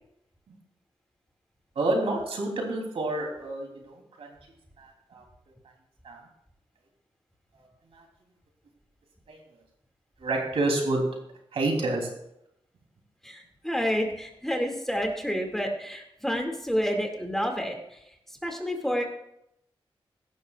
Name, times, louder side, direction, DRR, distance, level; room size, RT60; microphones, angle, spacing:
voice 1, 1.7-4.3 4.8-5.2 6.0-6.2 7.6-7.7 7.9-8.0 9.3-9.4 10.2-11.1 11.5-12.1, right 2 dB, 85° right, 1 dB, 3.2 m, -28 dB
voice 2, 13.2-19.0, equal, 5° left, 1 dB, 2.2 m, -29 dB
16.5 x 12.0 x 2.4 m, 0.79 s
wide cardioid pair, 95°, 10 cm